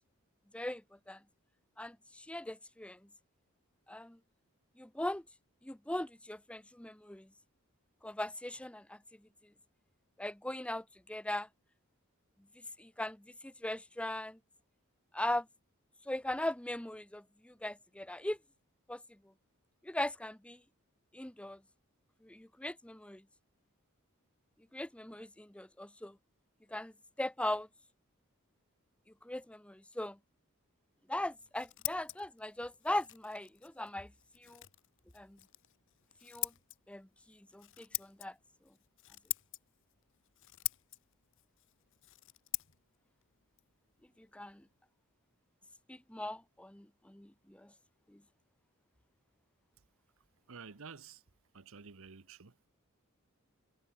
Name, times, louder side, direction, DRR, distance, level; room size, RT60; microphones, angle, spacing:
voice 1, 1.8-3.0 3.9-4.2 4.8-5.2 5.6-7.3 8.0-9.0 10.2-11.5 12.8-14.4 15.1-15.5 16.1-18.4 18.9-19.0 19.8-20.6 21.1-21.6 22.2-23.2 24.7-26.2 26.7-26.9 27.2-27.7 29.2-30.2 31.1-34.1 34.4-34.6 35.1-35.4 36.2-36.5 36.9-38.3 44.2-44.6 45.9-47.7 48.1-48.2, left 1 dB, 5° left, 0.7 m, -39 dB
Scissors, 31.2-44.8, left 18 dB, 65° left, 1.5 m, -45 dB
voice 2, 50.5-51.2 51.5-52.5, right 5 dB, 70° right, 1.1 m, -51 dB
head